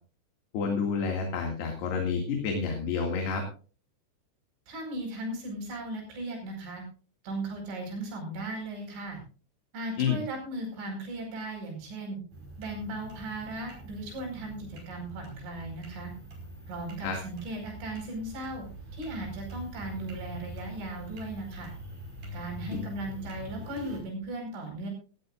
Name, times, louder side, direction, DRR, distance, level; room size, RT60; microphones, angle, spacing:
voice 1, 0.5-3.4 10.0-10.2 17.0-17.2, left 5 dB, 65° left, 2 dB, 4.1 m, -29 dB
voice 2, 4.7-6.8 7.2-9.2 9.7-12.2 12.6-16.1 16.7-18.6 18.9-21.7 22.3-24.9, right 2 dB, 80° right, 1 dB, 7.4 m, -37 dB
sound 1, 12.3-24.0, equal, 50° right, 6.7 m, -44 dB
18.0 x 16.0 x 2.5 m, 0.38 s
omnidirectional pair, 5.3 m